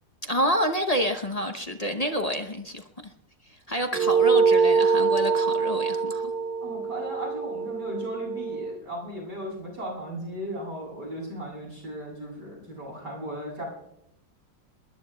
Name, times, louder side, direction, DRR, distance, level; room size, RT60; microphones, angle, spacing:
voice 1, 0.2-3.1 3.5-6.3, equal, 30° left, 0.7 m, -28 dB
sound 1, 3.9-8.7, right 5 dB, 25° right, 1.1 m, -24 dB
voice 2, 6.6-13.6, equal, 70° right, 8.5 m, -36 dB
27.5 x 21.5 x 2.3 m
omnidirectional pair, 1.9 m